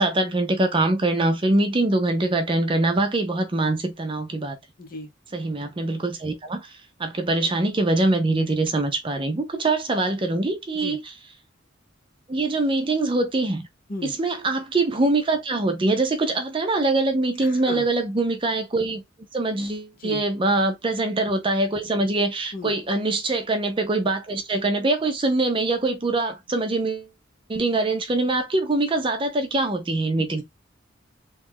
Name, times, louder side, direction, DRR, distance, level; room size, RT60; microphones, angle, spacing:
voice 1, 0.0-4.6 5.3-6.7 7.0-11.0 12.3-13.6 14.0-19.0 19.3-27.1 27.5-30.4, right 2 dB, 25° right, 0.5 m, -23 dB
voice 2, 4.8-5.1 10.7-11.0 13.9-14.1 17.4-17.9 20.0-20.2 22.5-22.7 30.2-30.4, left 2 dB, 45° left, 0.8 m, -35 dB
3.0 x 2.4 x 3.5 m
head